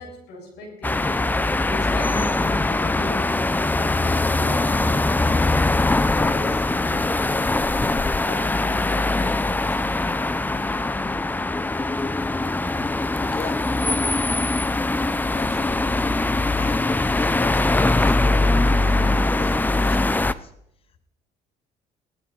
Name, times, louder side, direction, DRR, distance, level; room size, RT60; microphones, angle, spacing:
voice 1, 0.0-5.7 6.1-7.6 8.2-9.7 9.9-10.2, left 3 dB, 80° left, 3 dB, 7.3 m, -38 dB
sound 1, 0.8-20.3, left 2 dB, 10° left, 0.6 m, -22 dB
voice 2, 13.2-13.6 15.0-20.5, left 5 dB, 35° left, 11 dB, 1.0 m, -38 dB
18.0 x 12.5 x 5.9 m, 0.77 s
cardioid pair, 110°, 17 cm